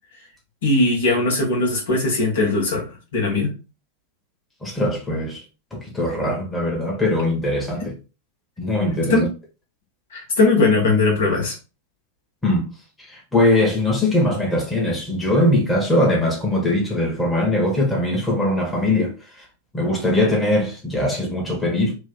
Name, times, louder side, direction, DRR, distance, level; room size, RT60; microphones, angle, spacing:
voice 1, 0.6-3.5 9.1-9.2 10.1-11.5, left 3 dB, 60° left, 1.4 m, -19 dB
voice 2, 4.6-5.4 5.7-7.9 8.6-9.3 12.4-12.7 13.0-19.4 19.7-21.9, left 1 dB, 10° left, 1.1 m, -21 dB
3.1 x 2.4 x 3.8 m
figure-of-eight pair, 90°, 0 cm